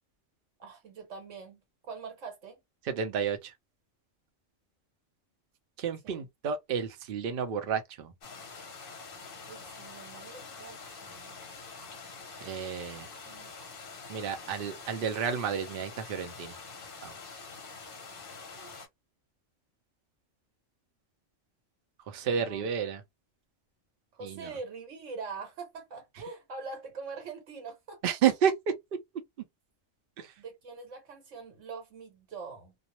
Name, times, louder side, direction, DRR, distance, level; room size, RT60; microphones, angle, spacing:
voice 1, 0.6-1.6 1.9-2.6 6.0-6.3 9.5-11.4 13.2-13.5 18.6-18.7 22.3-22.7 24.1-28.2 30.4-32.7, right 4 dB, 75° right, 1.2 m, -43 dB
voice 2, 2.9-3.4 5.8-8.1 12.4-13.1 14.1-16.5 17.0-17.1 22.1-23.0 24.2-24.5 28.0-28.5 30.2-30.3, right 8 dB, 55° right, 0.7 m, -30 dB
sound 1, 8.2-18.9, left 4 dB, 55° left, 0.8 m, -46 dB
2.4 x 2.0 x 2.8 m
omnidirectional pair, 1.3 m